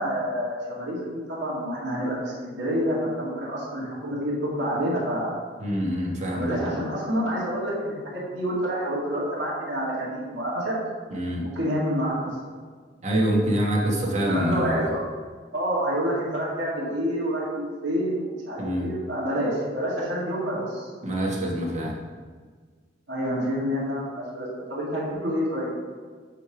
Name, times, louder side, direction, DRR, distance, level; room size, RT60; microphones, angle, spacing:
voice 1, 0.0-5.4 6.3-10.8 11.4-12.4 14.2-15.0 15.5-20.9 23.1-25.7, equal, 65° right, -7 dB, 2.1 m, -28 dB
voice 2, 5.6-6.6 11.1-11.4 13.0-14.9 18.6-18.9 21.0-21.9, right 1 dB, 40° right, -2 dB, 1.2 m, -25 dB
8.8 x 3.4 x 4.8 m, 1.5 s
head